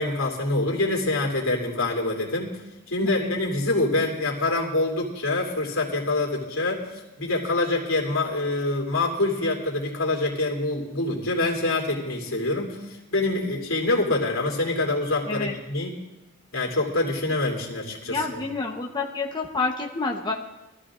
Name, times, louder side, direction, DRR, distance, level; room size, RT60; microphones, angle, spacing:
voice 1, 0.0-2.5 2.9-15.9 16.5-18.4, left 2 dB, 85° left, -1 dB, 2.9 m, -25 dB
voice 2, 3.0-3.3 15.3-15.6 18.0-20.3, left 3 dB, 20° left, 0 dB, 1.0 m, -29 dB
22.5 x 14.0 x 2.5 m, 1.0 s
head